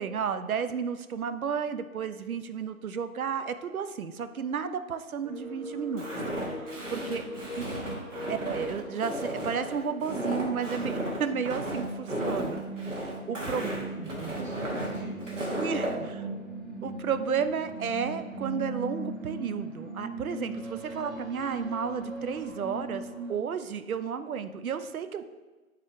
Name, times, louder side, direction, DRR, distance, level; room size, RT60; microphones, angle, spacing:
voice 1, 0.0-6.1 6.5-6.6 6.9-7.7 8.3-13.7 15.6-16.2 16.8-25.2, right 6 dB, 75° right, 11 dB, 0.5 m, -32 dB
sound 1, 5.2-23.4, right 2 dB, ahead, 0.4 m, -40 dB
Walk footsteps, 6.0-15.9, right 1 dB, 60° right, 1.4 m, -34 dB
voice 2, 7.0-8.0 13.3-15.2 15.7-16.4, right 2 dB, 20° right, -10 dB, 1.2 m, -43 dB
4.8 x 2.9 x 3.7 m, 1.2 s
figure-of-eight pair, 175°, 43 cm